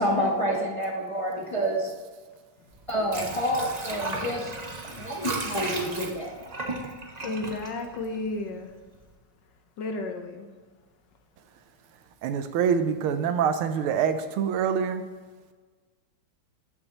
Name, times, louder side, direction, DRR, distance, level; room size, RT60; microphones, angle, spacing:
voice 1, 0.0-1.9 2.9-4.5 4.8-6.3, equal, 25° left, -2 dB, 0.8 m, -28 dB
Water / Sink (filling or washing), 2.7-8.6 9.0-9.1, right 3 dB, 40° right, 0.6 m, -36 dB
voice 2, 7.2-8.7 9.8-10.5, left 2 dB, 65° left, 5 dB, 1.4 m, -33 dB
voice 3, 12.2-15.0, right 7 dB, 90° right, 9 dB, 1.6 m, -25 dB
14.5 x 6.5 x 2.9 m, 1.4 s
omnidirectional pair, 2.3 m